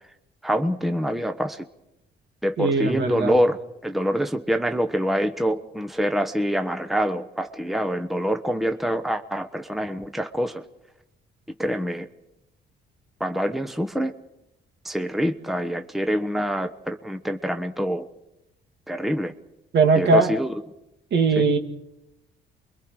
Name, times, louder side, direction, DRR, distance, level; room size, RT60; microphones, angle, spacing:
voice 1, 0.4-1.6 2.4-3.6 3.8-10.6 11.6-12.1 13.2-14.1 14.8-18.1 18.9-19.3 19.9-20.5 21.4-21.5, equal, ahead, 6 dB, 1.0 m, -25 dB
voice 2, 2.6-3.3 19.7-20.3 21.1-21.6, right 4 dB, 60° right, 5 dB, 2.4 m, -19 dB
29.0 x 22.5 x 4.8 m, 0.89 s
cardioid pair, 90°, 20 cm